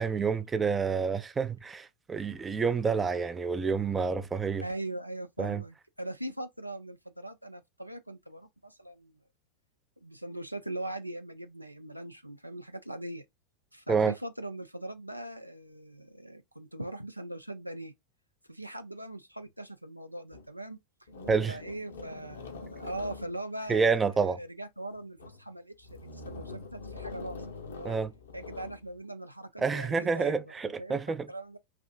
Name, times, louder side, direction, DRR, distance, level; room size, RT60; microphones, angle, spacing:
voice 1, 0.0-4.6 5.4-5.6 13.9-14.1 21.3-21.6 23.7-24.4 27.8-28.1 29.6-31.3, right 5 dB, 15° right, 0.3 m, -28 dB
voice 2, 4.6-9.2 10.0-13.2 13.7-17.9 18.5-20.8 21.5-28.0 28.3-31.6, right 1 dB, 90° right, 0.3 m, -41 dB
sound 1, 20.3-20.5 21.1-24.3 24.9-25.4 25.8-28.8, left 3 dB, 65° left, 0.7 m, -44 dB
3.3 x 2.5 x 2.3 m
figure-of-eight pair, 90°, 0 cm